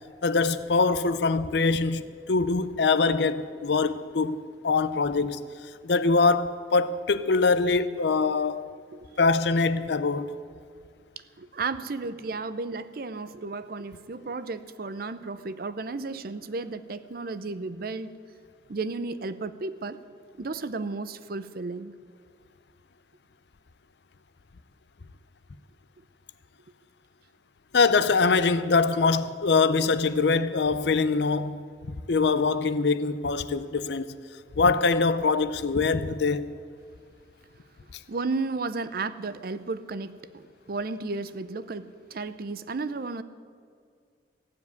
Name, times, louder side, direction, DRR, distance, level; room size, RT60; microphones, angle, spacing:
voice 1, 0.2-4.4 4.6-5.4 5.8-8.6 9.2-10.3 27.7-31.6 32.1-34.2 34.6-36.5, left 4 dB, 65° left, 0.6 m, -23 dB
voice 2, 11.4-18.2 18.7-20.0 20.4-21.9 38.1-43.2, right 3 dB, 50° right, 0.5 m, -33 dB
15.5 x 7.2 x 9.4 m
head